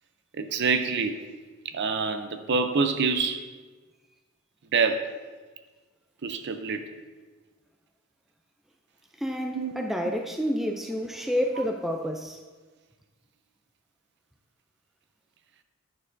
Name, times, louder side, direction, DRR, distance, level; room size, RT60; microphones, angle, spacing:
voice 1, 0.4-1.2 1.6-3.4 4.7-5.1 6.2-6.8 9.5-9.8 11.6-11.7, right 4 dB, 55° right, 8 dB, 0.5 m, -26 dB
voice 2, 9.2-12.4, equal, ahead, 3 dB, 0.3 m, -29 dB
9.5 x 6.4 x 2.6 m, 1.3 s
head